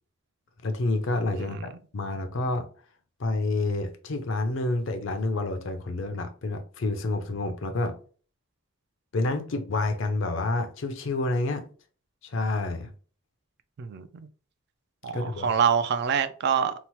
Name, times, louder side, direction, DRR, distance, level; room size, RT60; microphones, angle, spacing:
voice 1, 0.6-1.6 1.9-2.7 3.2-7.9 9.1-11.6 12.2-12.9 15.1-15.5, left 2 dB, 65° left, 0.5 m, -28 dB
voice 2, 1.4-1.7 13.8-14.1 15.0-16.7, right 7 dB, 55° right, 0.3 m, -26 dB
2.8 x 2.0 x 2.9 m
head